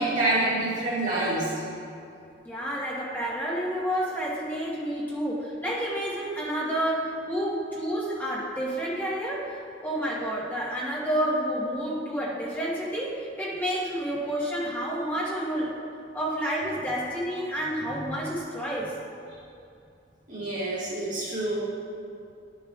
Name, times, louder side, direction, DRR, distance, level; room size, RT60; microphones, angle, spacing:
voice 1, 0.0-1.5 20.3-21.6, right 2 dB, 45° right, -8 dB, 1.8 m, -27 dB
voice 2, 2.4-15.7 16.1-18.9, equal, 10° left, -8 dB, 1.2 m, -29 dB
12.0 x 6.9 x 2.4 m, 2.5 s
head